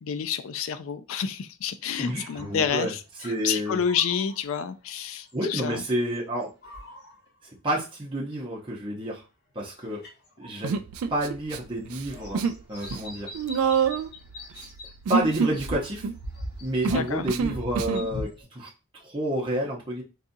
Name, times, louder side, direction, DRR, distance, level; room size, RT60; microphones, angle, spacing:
voice 1, 0.0-3.0 3.2-5.8 16.9-17.3, left 7 dB, 65° left, 12 dB, 0.4 m, -29 dB
voice 2, 2.0-2.9 3.2-3.8 5.3-6.5 7.4-9.2 9.5-10.0 10.4-10.8 11.1-13.3 15.1-16.0 16.6-18.7 19.0-20.0, right 1 dB, 25° right, -4 dB, 0.8 m, -29 dB
sound 1, 2.2-2.6 3.2-5.0 5.3-6.2 6.4-7.3 8.3-8.4 9.7-10.6 11.5-11.6 12.0-14.9 15.2-18.4, left 1 dB, 45° left, 1.3 m, -41 dB
Human voice, 10.6-11.6 11.9-12.6 12.9-18.1, right 6 dB, 75° right, 0.3 m, -27 dB
3.9 x 2.4 x 2.7 m, 0.29 s
head